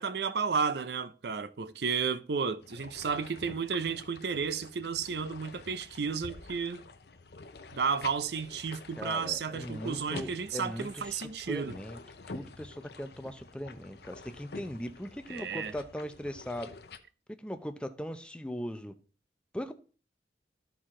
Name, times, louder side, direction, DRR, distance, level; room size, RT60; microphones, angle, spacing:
voice 1, 0.0-6.8 7.7-11.8 15.3-15.7, right 5 dB, 70° right, 0.5 m, -32 dB
sound 1, 2.6-17.0, left 3 dB, 65° left, 0.7 m, -48 dB
voice 2, 9.0-12.0 12.3-16.7 17.4-18.9 19.5-19.7, equal, 5° left, 0.6 m, -39 dB
13.5 x 4.6 x 3.7 m
head